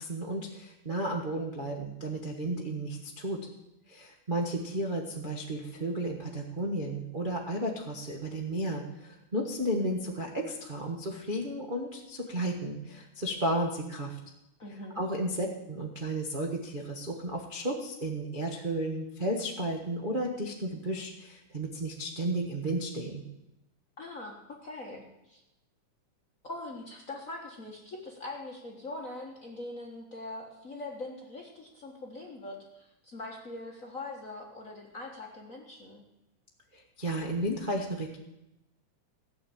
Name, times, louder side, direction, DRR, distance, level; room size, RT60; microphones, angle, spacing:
voice 1, 0.0-3.4 3.9-14.2 14.9-23.2 36.7-38.2, right 1 dB, 60° right, -2 dB, 0.5 m, -33 dB
voice 2, 14.6-15.0 24.0-25.4 26.4-36.0, left 2 dB, 40° left, 0 dB, 1.1 m, -42 dB
16.5 x 6.4 x 8.8 m, 0.92 s
omnidirectional pair, 3.6 m